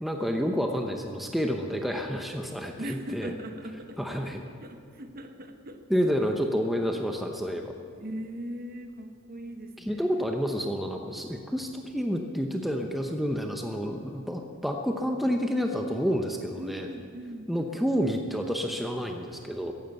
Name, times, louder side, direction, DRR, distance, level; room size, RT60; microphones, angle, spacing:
voice 1, 0.0-3.3 4.0-4.4 5.9-7.7 9.9-16.9 17.5-19.7, equal, ahead, 3 dB, 0.7 m, -29 dB
voice 2, 2.8-4.2 4.5-5.9 8.0-10.3 16.6-17.8 18.2-18.3, equal, 40° right, 6 dB, 1.1 m, -40 dB
14.5 x 11.0 x 8.0 m, 2.4 s
head